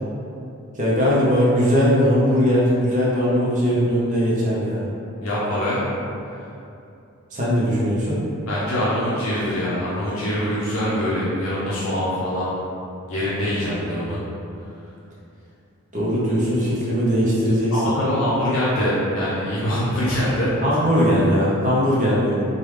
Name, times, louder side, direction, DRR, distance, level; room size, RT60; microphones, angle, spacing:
voice 1, 0.7-4.9 7.3-8.2 15.9-17.8 20.6-22.5, equal, 35° right, -7 dB, 0.6 m, -19 dB
voice 2, 5.2-5.8 8.5-12.5 13.1-14.2 17.7-20.5, equal, 65° left, -8 dB, 0.6 m, -23 dB
3.3 x 2.3 x 3.2 m, 2.7 s
head